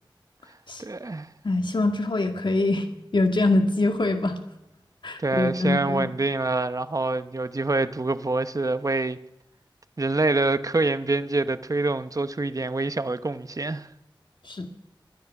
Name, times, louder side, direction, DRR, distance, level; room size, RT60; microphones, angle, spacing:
voice 1, 0.8-1.3 5.2-9.2 10.0-13.9, right 2 dB, 40° right, 0.9 m, -26 dB
voice 2, 1.4-2.9 3.1-4.4 5.0-6.1 14.4-14.7, left 2 dB, 65° left, 1.9 m, -24 dB
22.0 x 10.5 x 6.0 m
wide cardioid pair, 60°, 9 cm